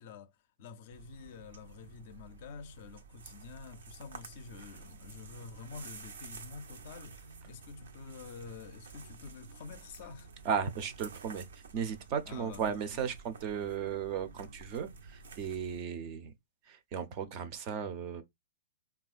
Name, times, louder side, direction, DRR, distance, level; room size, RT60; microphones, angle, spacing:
voice 1, 0.0-10.3 12.3-13.1, left 5 dB, 45° left, 0.4 m, -48 dB
sound 1, 0.9-15.8, right 4 dB, 80° right, 0.6 m, -51 dB
voice 2, 10.4-11.5 11.7-16.3 16.7-18.2, right 7 dB, 30° right, 0.5 m, -35 dB
3.5 x 2.3 x 2.4 m
hypercardioid pair, 160°, 0 cm